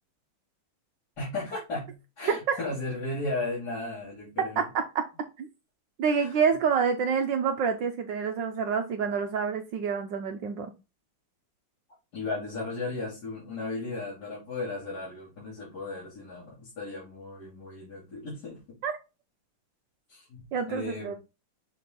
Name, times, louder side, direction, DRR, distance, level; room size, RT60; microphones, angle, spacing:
voice 1, 1.2-4.7 6.2-6.4 12.1-18.8 20.1-21.2, left 2 dB, 45° left, -7 dB, 3.3 m, -35 dB
voice 2, 6.0-10.7 18.8-18.9 20.5-21.1, right 6 dB, 70° right, 6 dB, 1.2 m, -27 dB
6.5 x 4.3 x 3.7 m, 0.27 s
omnidirectional pair, 2.4 m